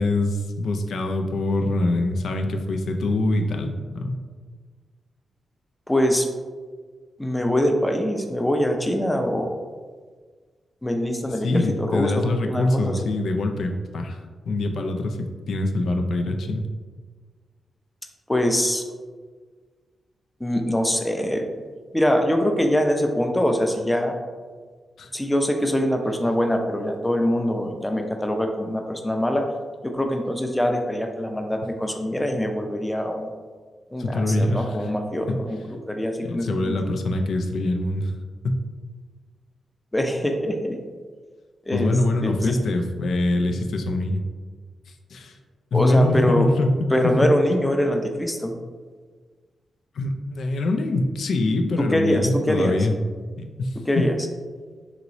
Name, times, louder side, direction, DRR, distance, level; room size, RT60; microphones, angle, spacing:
voice 1, 0.0-4.2 11.3-14.2 14.5-16.7 25.0-25.1 34.0-34.9 35.3-35.4 36.2-38.1 38.4-38.6 41.7-44.2 45.1-45.4 45.7-47.3 50.0-52.9 53.4-54.1, left 2 dB, 75° left, 4 dB, 0.3 m, -24 dB
voice 2, 5.9-6.3 7.2-9.5 10.8-13.0 18.3-18.8 20.4-21.4 21.9-24.1 25.1-29.4 29.8-33.3 33.9-35.6 35.9-36.7 39.9-40.8 41.7-41.9 42.2-42.6 45.7-46.5 46.9-48.6 51.9-52.8 53.9-54.1, equal, 10° left, 4 dB, 0.4 m, -23 dB
2.9 x 2.9 x 2.6 m, 1.5 s
cardioid pair, 60°, 0 cm